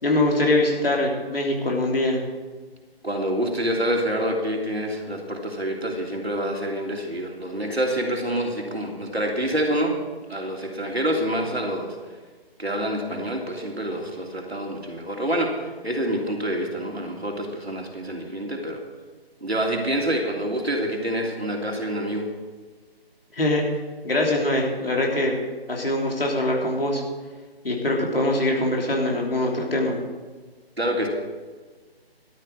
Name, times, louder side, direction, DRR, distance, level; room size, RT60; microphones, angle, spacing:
voice 1, 0.0-2.2 23.3-23.6 24.0-25.3 25.7-27.0 27.6-30.0, left 1 dB, 65° left, -1 dB, 3.3 m, -23 dB
voice 2, 3.0-10.0 10.3-12.0 12.6-18.8 19.4-22.3 30.8-31.1, right 1 dB, 80° right, 0 dB, 3.2 m, -27 dB
13.0 x 12.5 x 4.9 m, 1.4 s
figure-of-eight pair, 150°, 31 cm